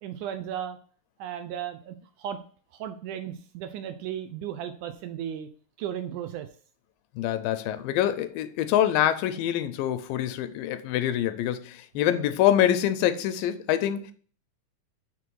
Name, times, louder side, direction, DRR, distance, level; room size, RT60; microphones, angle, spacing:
voice 1, 0.0-0.8 1.2-2.4 2.7-5.5 5.8-6.5 12.0-12.1, right 9 dB, 80° right, 1.9 m, -35 dB
voice 2, 7.2-14.1, left 11 dB, 90° left, 2.3 m, -25 dB
6.0 x 3.7 x 4.6 m
omnidirectional pair, 3.9 m